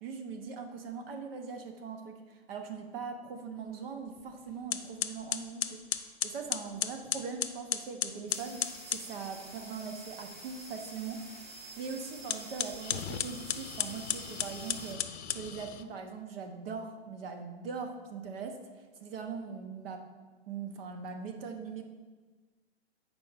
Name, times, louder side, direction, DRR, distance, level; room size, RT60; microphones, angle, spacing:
voice 1, 0.0-11.2 11.5-20.0 20.5-21.8, right 5 dB, 55° right, 5 dB, 1.1 m, -41 dB
sound 1, 4.2-4.3 4.7-9.1 12.2-15.9, left 9 dB, 70° left, 0.6 m, -35 dB
sound 2, 8.3-14.9, right 2 dB, 30° right, 1.7 m, -48 dB
7.0 x 4.7 x 5.5 m, 1.4 s
hypercardioid pair, 115°, 34 cm